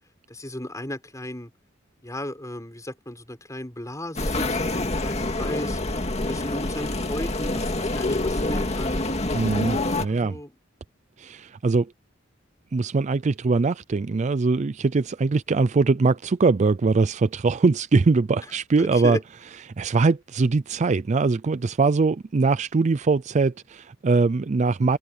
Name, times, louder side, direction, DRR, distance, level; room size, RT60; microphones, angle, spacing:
voice 1, 0.3-1.5 2.0-5.8 6.2-9.0 9.9-10.5 18.8-19.2, left 1 dB, 15° left, 6.5 m, -35 dB
sound 1, 4.2-10.1, left 2 dB, 35° left, 2.1 m, -26 dB
voice 2, 9.3-10.4 11.2-11.9 12.7-19.2 19.8-25.0, right 4 dB, 35° right, 0.4 m, -22 dB
head